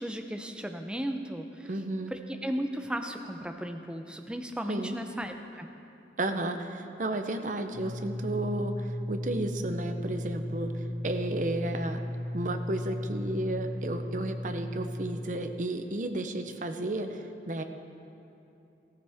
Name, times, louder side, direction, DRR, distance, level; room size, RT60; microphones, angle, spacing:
voice 1, 0.0-1.7 2.1-5.7 10.9-11.2, equal, 5° right, 5 dB, 0.6 m, -35 dB
voice 2, 1.7-2.1 4.7-5.0 6.2-12.0 12.3-17.6, right 1 dB, 45° right, 7 dB, 0.7 m, -33 dB
sound 1, 7.7-15.2, left 1 dB, 25° left, 2.5 m, -35 dB
15.0 x 14.0 x 3.5 m, 2.8 s
head